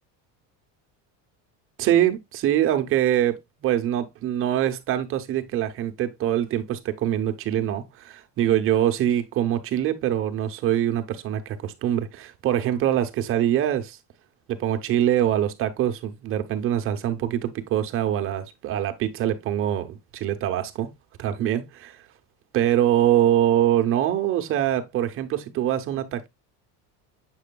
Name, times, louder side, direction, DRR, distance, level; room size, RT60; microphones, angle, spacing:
voice 1, 1.8-14.0 14.5-20.9 21.2-22.0 22.5-26.3, right 11 dB, 35° right, 0.7 m, -24 dB
7.6 x 6.2 x 2.2 m
cardioid pair, 175°, 38 cm